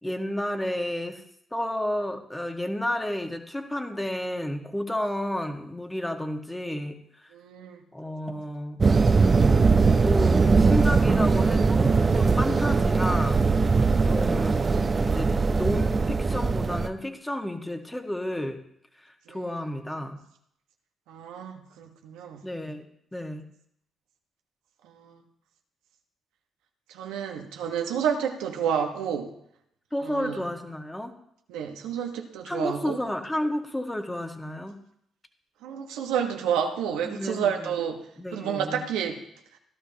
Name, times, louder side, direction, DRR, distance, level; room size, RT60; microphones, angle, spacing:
voice 1, 0.0-1.2 1.5-7.3 7.9-8.8 10.0-13.4 14.0-14.7 15.0-18.6 19.0-20.2 22.4-23.4 29.9-31.1 32.5-34.8 37.0-37.7 38.2-38.8, left 1 dB, 10° left, 4 dB, 1.6 m, -31 dB
voice 2, 7.3-7.8 19.3-19.6 21.1-22.4 24.9-25.2 26.9-29.3 30.0-30.4 31.5-33.0 35.6-38.0 38.3-39.2, right 8 dB, 90° right, 3 dB, 1.2 m, -30 dB
sound 1, 8.8-16.9, right 4 dB, 40° right, 0.7 m, -21 dB
15.5 x 12.0 x 2.9 m, 0.74 s
supercardioid pair, 55°, 0 cm